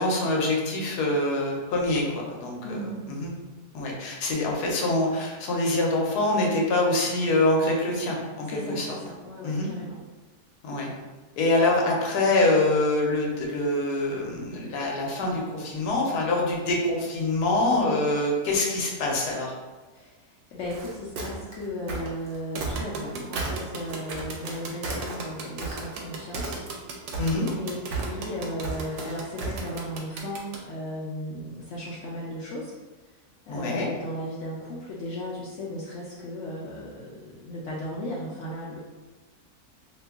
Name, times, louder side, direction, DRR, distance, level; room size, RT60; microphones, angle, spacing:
voice 1, 0.0-2.8 3.1-3.3 3.7-8.9 9.4-9.7 10.6-10.9 11.4-19.5 27.2-27.5 33.5-33.9, left 2 dB, 85° left, -1 dB, 1.2 m, -25 dB
voice 2, 2.6-3.1 8.4-10.0 17.6-18.1 19.9-20.1 20.5-26.6 27.5-32.7 33.5-38.8, left 1 dB, 65° left, -5 dB, 0.7 m, -35 dB
sound 1, 20.6-23.1 23.4-26.0 26.3-26.9 27.1-29.9, right 3 dB, 60° right, 0.8 m, -34 dB
sound 2, 22.6-30.6, right 4 dB, 90° right, 1.1 m, -37 dB
2.9 x 2.2 x 3.4 m, 1.2 s
omnidirectional pair, 1.6 m